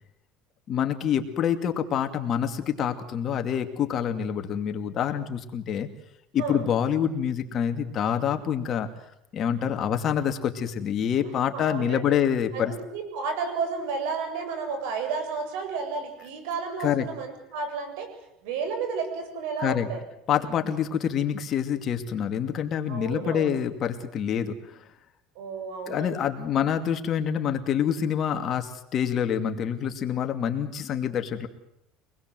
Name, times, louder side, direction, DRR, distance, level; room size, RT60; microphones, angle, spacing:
voice 1, 0.7-5.9 6.3-8.9 9.3-12.7 16.8-17.1 19.6-19.9 20.3-24.8 25.9-31.5, left 8 dB, 40° left, 6 dB, 2.5 m, -26 dB
voice 2, 11.5-12.1 12.5-18.1 18.4-20.0 22.9-23.5 25.4-26.3, right 5 dB, 85° right, 6 dB, 7.6 m, -32 dB
25.5 x 20.5 x 7.8 m, 0.81 s
cardioid pair, 135°, 0 cm